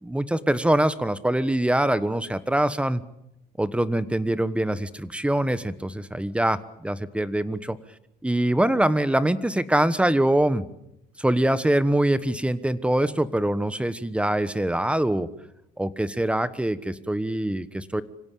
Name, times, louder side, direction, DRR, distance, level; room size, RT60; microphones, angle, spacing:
voice 1, 0.0-3.0 3.6-7.8 8.2-10.6 11.2-15.3 15.8-18.0, right 1 dB, 5° right, 15 dB, 1.2 m, -24 dB
25.5 x 17.0 x 8.6 m, 0.82 s
cardioid pair, 110°, 17 cm